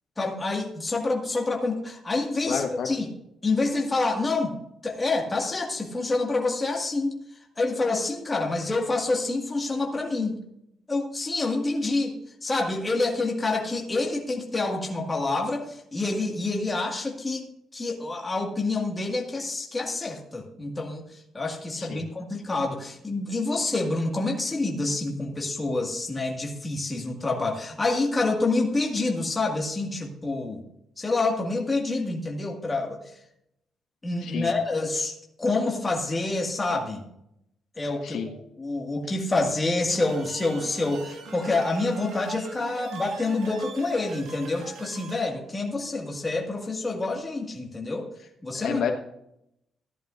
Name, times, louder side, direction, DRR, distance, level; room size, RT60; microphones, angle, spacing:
voice 1, 0.2-3.1 3.4-4.6 4.8-7.2 7.6-10.4 10.9-12.2 12.4-17.5 17.7-30.6 31.0-33.0 34.0-37.0 37.8-48.1 48.4-48.8, left 3 dB, 15° left, 0 dB, 1.9 m, -27 dB
voice 2, 2.5-2.9 21.8-22.1 34.2-34.5 38.0-38.3 48.6-48.9, left 7 dB, 70° left, 3 dB, 1.4 m, -29 dB
sound 1, 39.9-45.3, right 4 dB, 80° right, 2.0 m, -41 dB
15.0 x 10.5 x 2.6 m, 0.78 s
cardioid pair, 150°, 0 cm